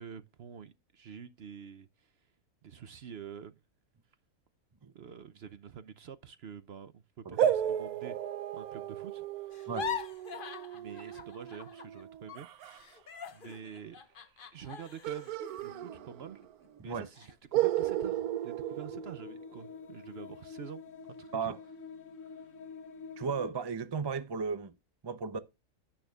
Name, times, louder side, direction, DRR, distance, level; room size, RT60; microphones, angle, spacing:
voice 1, 0.0-2.1 2.6-3.6 4.9-9.8 10.7-13.0 13.3-14.0 14.5-16.4 16.8-20.8 21.2-21.5 22.2-22.5, right 7 dB, 60° right, 0.7 m, -48 dB
sound 1, 7.4-12.8 15.0-16.5 16.8-16.9 17.5-19.7, right 11 dB, 80° right, 1.1 m, -34 dB
sound 2, 9.5-12.0 12.3-16.7 17.1-17.3 17.7-18.2, left 8 dB, 40° left, 0.9 m, -43 dB
sound 3, 18.6-23.5, left 5 dB, 60° left, 1.1 m, -47 dB
voice 2, 23.2-24.7 25.0-25.4, right 5 dB, 40° right, 0.3 m, -35 dB
10.0 x 8.7 x 2.4 m
omnidirectional pair, 1.6 m